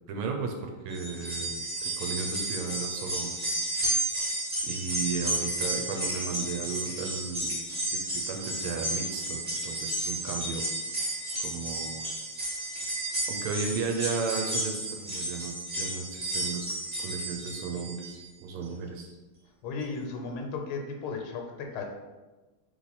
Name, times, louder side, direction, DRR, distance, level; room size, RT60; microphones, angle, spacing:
voice 1, 0.0-3.7 4.6-7.6 7.9-10.7 11.4-12.1 13.3-16.7 17.0-19.1, right 5 dB, 85° right, 3 dB, 1.5 m, -35 dB
sound 1, 0.9-18.2 18.6-18.7 19.8-19.9, right 1 dB, 25° right, 1.1 m, -32 dB
voice 2, 19.6-21.8, left 4 dB, 80° left, 3 dB, 1.5 m, -35 dB
3.4 x 3.2 x 4.0 m, 1.2 s
omnidirectional pair, 2.4 m